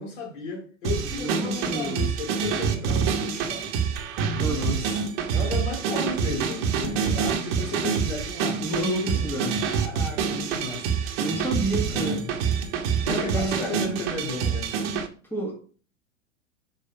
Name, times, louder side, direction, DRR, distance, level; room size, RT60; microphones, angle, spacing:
voice 1, 0.0-3.7 4.3-11.2 11.9-12.3 13.0-14.7, left 3 dB, 65° left, 2.9 m, -34 dB
sound 1, 0.8-15.1, right 6 dB, 50° right, 1.3 m, -27 dB
voice 2, 1.1-2.1 4.4-4.8 8.6-9.6 11.2-12.3 13.1-13.8 15.3-15.6, right 1 dB, 5° left, 2.0 m, -30 dB
5.3 x 5.2 x 5.8 m
hypercardioid pair, 110°, 39 cm